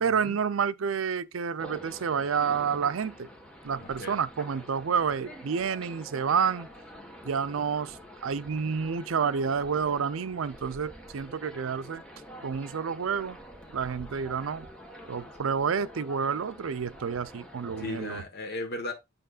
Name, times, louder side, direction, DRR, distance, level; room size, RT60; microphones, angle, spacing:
voice 1, 0.0-3.3 3.6-6.7 7.2-12.0 12.4-13.4 13.7-14.7 15.1-18.2, right 6 dB, 85° right, 0.5 m, -29 dB
sound 1, 1.6-18.2, equal, 5° left, 1.3 m, -47 dB
voice 2, 3.8-4.2 17.8-18.9, left 2 dB, 55° left, 1.3 m, -36 dB
9.0 x 5.6 x 2.4 m
head